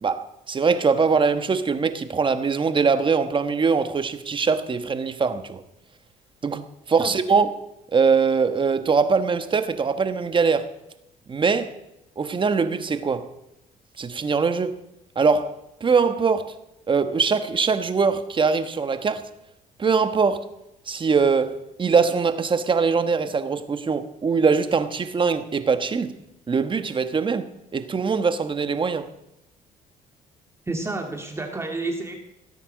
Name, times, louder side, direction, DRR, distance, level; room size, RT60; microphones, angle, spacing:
voice 1, 0.0-5.6 6.4-7.5 7.9-10.7 11.3-11.7 12.2-13.3 14.0-14.8 15.1-15.5 15.8-16.5 16.9-19.2 19.8-20.4 20.9-26.2 26.5-29.1, right 5 dB, 35° right, 1.3 m, -22 dB
voice 2, 30.7-32.2, right 2 dB, 15° right, 2.0 m, -29 dB
17.5 x 8.9 x 6.5 m
cardioid pair, 90°, 15 cm